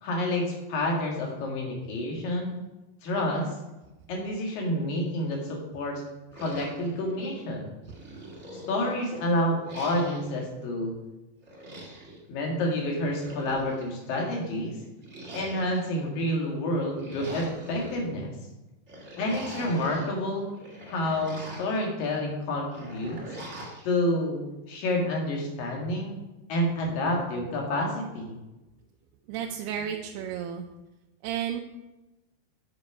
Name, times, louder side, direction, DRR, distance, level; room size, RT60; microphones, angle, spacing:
voice 1, 0.0-2.5 3.0-3.5 4.1-6.0 6.4-7.7 8.5-11.0 12.3-14.7 15.3-18.3 19.2-20.5 20.9-23.2 23.9-24.4 24.7-26.2 26.5-28.3, left 1 dB, 75° left, -1 dB, 3.6 m, -29 dB
sound 1, 6.3-7.5 7.9-9.1 9.6-10.4 11.4-12.2 13.0-14.0 15.0-16.0 16.8-18.0 18.9-20.1 20.5-21.8 22.7-23.9, right 1 dB, 40° right, 0.9 m, -42 dB
voice 2, 29.3-30.7 31.2-31.6, right 9 dB, 80° right, 3 dB, 2.2 m, -32 dB
9.6 x 5.8 x 4.8 m, 1.0 s
omnidirectional pair, 4.0 m